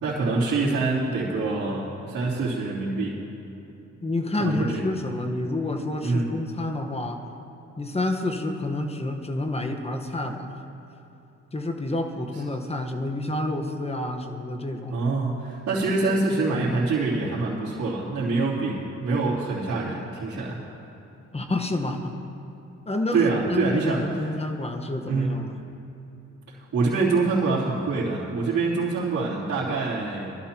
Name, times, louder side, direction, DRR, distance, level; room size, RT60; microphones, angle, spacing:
voice 1, 0.0-3.2 4.4-4.8 6.0-6.3 12.3-12.4 14.9-20.6 23.1-24.0 25.1-25.3 26.5-30.4, right 3 dB, 65° right, -11 dB, 3.2 m, -25 dB
voice 2, 4.0-7.2 7.8-10.5 11.5-15.0 21.3-22.1 22.8-25.6, left 2 dB, 20° left, 5 dB, 1.2 m, -29 dB
21.0 x 13.0 x 3.0 m, 3.0 s
cardioid pair, 90°, 30 cm